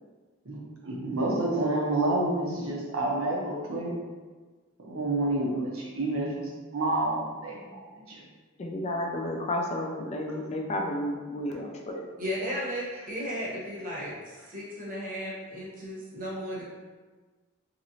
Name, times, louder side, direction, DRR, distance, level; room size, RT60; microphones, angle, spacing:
voice 1, 0.5-3.9 4.8-7.8 8.1-8.2, right 2 dB, 75° right, -3 dB, 0.8 m, -29 dB
voice 2, 8.6-12.1, left 1 dB, 35° left, 1 dB, 0.3 m, -32 dB
voice 3, 12.2-16.6, equal, 45° right, -6 dB, 0.9 m, -35 dB
3.0 x 2.9 x 2.7 m, 1.4 s
head